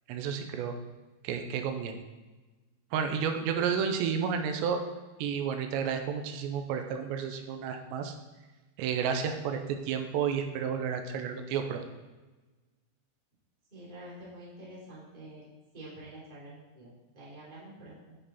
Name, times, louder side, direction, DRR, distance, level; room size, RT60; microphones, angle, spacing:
voice 1, 0.1-0.8 1.2-2.0 2.9-4.8 5.2-8.2 8.8-11.8, right 7 dB, 90° right, 6 dB, 2.9 m, -31 dB
voice 2, 13.7-15.5 15.7-18.2, right 1 dB, 15° right, -7 dB, 1.9 m, -47 dB
10.0 x 5.4 x 4.1 m, 1.2 s
omnidirectional pair, 5.0 m